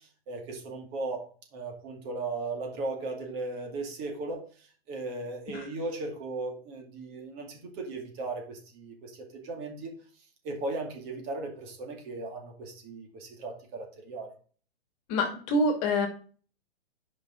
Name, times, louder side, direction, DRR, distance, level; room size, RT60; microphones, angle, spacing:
voice 1, 0.0-9.9 10.4-14.3, right 3 dB, 35° right, 2 dB, 2.4 m, -37 dB
voice 2, 15.1-16.1, left 1 dB, 35° left, 5 dB, 2.0 m, -25 dB
11.0 x 5.4 x 3.7 m, 0.42 s
hypercardioid pair, 145°, 31 cm